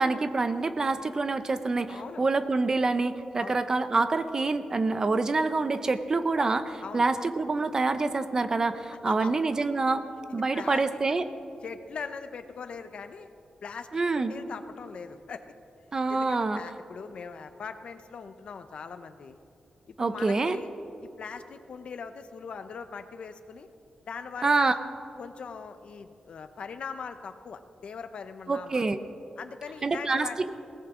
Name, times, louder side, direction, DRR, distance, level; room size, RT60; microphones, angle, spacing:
voice 1, 0.0-10.0 10.3-11.2 13.9-14.3 15.9-16.6 20.0-20.6 24.4-24.7 28.5-29.0 29.8-30.5, right 3 dB, 30° right, 11 dB, 0.7 m, -26 dB
voice 2, 1.9-2.3 3.3-3.6 6.8-7.1 9.1-9.3 10.5-10.8 11.1-11.2 11.6-13.3 13.6-15.4 16.1-19.4 19.9-20.7 21.0-23.7 24.1-24.8 25.2-28.8 29.4-30.4, left 5 dB, 65° left, 9 dB, 0.8 m, -40 dB
21.0 x 18.0 x 3.8 m, 2.7 s
wide cardioid pair, 155°, 2 cm